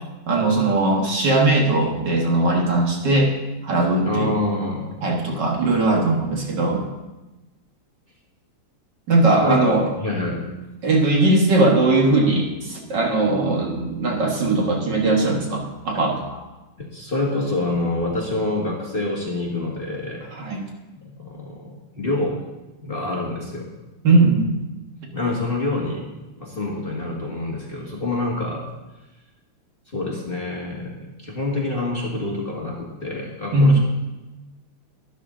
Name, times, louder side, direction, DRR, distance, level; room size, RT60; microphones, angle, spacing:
voice 1, 0.3-3.3 3.6-4.3 5.0-6.9 9.1-9.8 10.8-16.4 20.3-20.6 24.0-24.7 33.5-33.8, right 2 dB, 55° right, 0 dB, 1.9 m, -19 dB
voice 2, 4.0-4.9 9.4-9.7 10.0-10.4 16.8-20.2 21.0-22.4 22.8-23.7 25.1-26.0 26.4-28.6 29.9-33.8, left 2 dB, 25° left, -4 dB, 1.7 m, -26 dB
12.0 x 11.5 x 3.8 m, 1.1 s
omnidirectional pair, 2.4 m